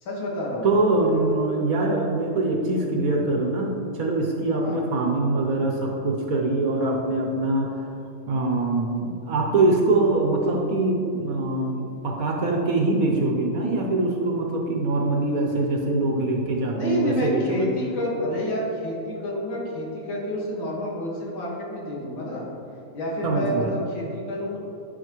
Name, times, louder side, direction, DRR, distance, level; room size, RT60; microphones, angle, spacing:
voice 1, 0.0-0.7 4.6-4.8 16.7-22.5 22.9-24.6, left 1 dB, 90° left, -5 dB, 2.5 m, -29 dB
voice 2, 0.6-7.9 8.3-17.7 23.2-23.7, right 2 dB, 60° right, 0 dB, 1.1 m, -23 dB
11.5 x 6.0 x 3.1 m, 2.9 s
omnidirectional pair, 2.1 m